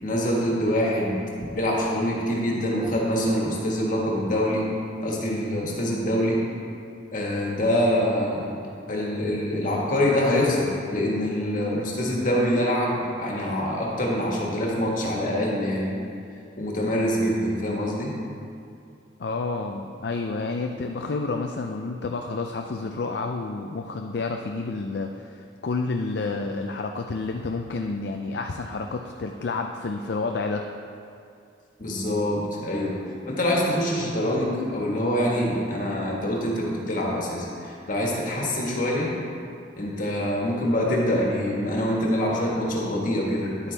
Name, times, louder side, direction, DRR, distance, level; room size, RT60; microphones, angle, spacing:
voice 1, 0.0-1.2 1.5-4.7 5.0-6.4 7.1-8.5 8.9-15.9 16.6-18.1 31.8-33.0 33.3-39.1 39.8-43.7, left 1 dB, 45° left, -3 dB, 1.6 m, -25 dB
voice 2, 19.2-30.6, left 3 dB, 60° left, 3 dB, 0.4 m, -30 dB
10.5 x 8.3 x 3.4 m, 2.5 s
head